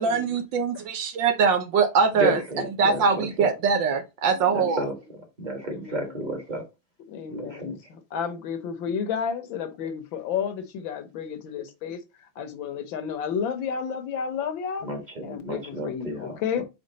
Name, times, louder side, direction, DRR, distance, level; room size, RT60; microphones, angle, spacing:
voice 1, 0.0-2.4 2.8-4.8, right 5 dB, 65° right, 1.4 m, -22 dB
voice 2, 2.2-3.5 4.5-4.9 5.4-6.6 7.3-7.8 14.8-16.6, right 1 dB, 25° right, 1.4 m, -32 dB
voice 3, 4.3-4.9 5.6-6.2 7.1-12.0 12.4-14.9 15.2-16.6, left 7 dB, 70° left, 1.6 m, -32 dB
5.3 x 4.9 x 3.9 m
omnidirectional pair, 2.3 m